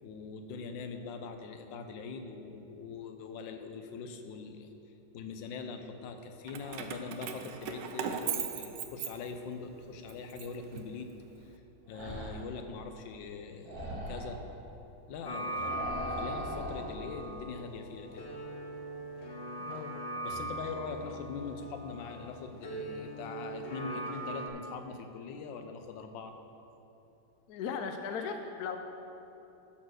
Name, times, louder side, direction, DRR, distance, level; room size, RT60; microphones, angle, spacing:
voice 1, 0.0-4.7 5.1-11.1 11.4-11.5 11.9-14.4 15.1-15.8 16.2-18.2 20.2-26.3, left 4 dB, 85° left, 7 dB, 1.4 m, -42 dB
Keys jangling, 6.5-9.6 10.1-11.4, right 8 dB, 80° right, 1.2 m, -38 dB
sound 1, 11.9-12.5 13.6-14.4 15.6-16.9, right 1 dB, 55° right, 1.8 m, -40 dB
sound 2, 15.2-24.5, right 1 dB, 50° left, 0.7 m, -40 dB
voice 2, 19.6-20.0 27.5-28.8, left 6 dB, 70° left, 5 dB, 1.0 m, -37 dB
11.5 x 4.5 x 6.2 m, 2.9 s
omnidirectional pair, 2.0 m